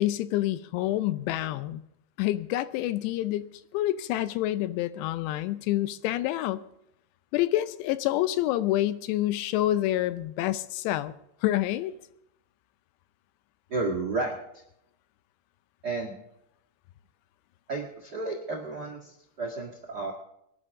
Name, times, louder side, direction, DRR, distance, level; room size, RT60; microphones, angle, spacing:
voice 1, 0.0-1.8 2.2-6.6 7.3-11.1 11.4-12.0, left 14 dB, 85° left, 14 dB, 2.8 m, -27 dB
voice 2, 13.7-14.6 15.8-16.2 17.7-20.1, right 3 dB, 75° right, 1 dB, 0.9 m, -32 dB
24.5 x 11.0 x 3.6 m, 0.79 s
omnidirectional pair, 5.0 m